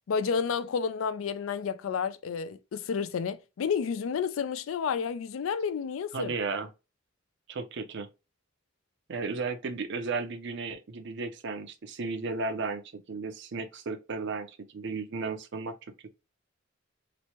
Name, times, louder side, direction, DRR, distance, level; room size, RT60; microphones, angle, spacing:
voice 1, 0.1-6.3, left 6 dB, 85° left, 0.4 m, -30 dB
voice 2, 6.1-6.7 7.5-8.1 9.1-15.7, right 4 dB, 65° right, 0.5 m, -34 dB
3.0 x 2.1 x 2.8 m
head